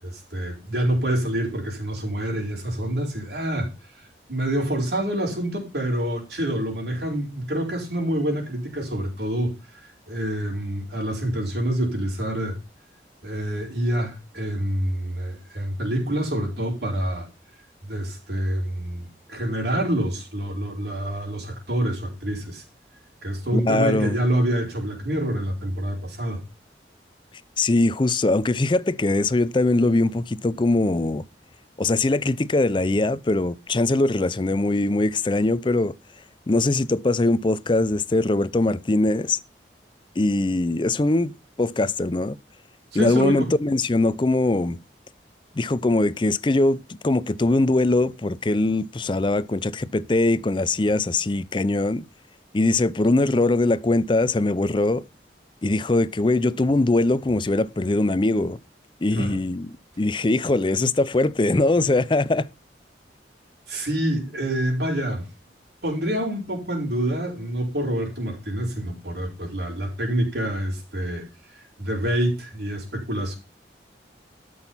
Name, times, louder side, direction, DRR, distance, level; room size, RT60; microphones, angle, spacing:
voice 1, 0.0-3.7 4.3-12.6 13.2-17.3 17.8-22.6 23.2-26.4 42.9-43.5 59.2-59.4 63.7-65.3 65.8-71.2 71.5-73.3, right 1 dB, 65° right, 5.0 m, -27 dB
voice 2, 23.5-24.2 27.6-31.2 31.8-35.9 36.5-39.4 40.2-41.3 41.6-42.4 42.9-44.8 45.5-52.1 52.5-55.0 55.6-58.6 59.0-62.5, left 2 dB, 25° left, 0.5 m, -22 dB
13.0 x 6.3 x 5.6 m
head